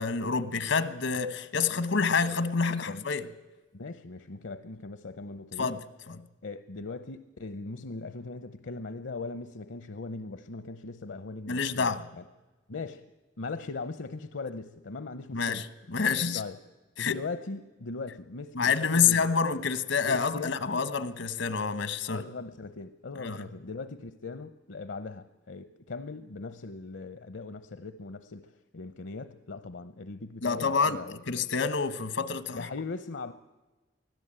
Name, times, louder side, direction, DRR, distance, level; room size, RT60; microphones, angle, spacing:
voice 1, 0.0-3.3 5.6-6.2 11.5-12.1 15.3-16.4 17.0-17.2 18.5-22.2 23.1-23.4 30.4-32.7, left 5 dB, 90° left, 1.3 m, -28 dB
voice 2, 3.7-5.7 6.4-11.9 12.7-13.0 13.4-15.6 16.3-16.6 17.0-19.3 20.1-20.9 22.1-31.2 32.5-33.3, left 3 dB, 70° left, 0.7 m, -39 dB
24.5 x 16.0 x 8.9 m
head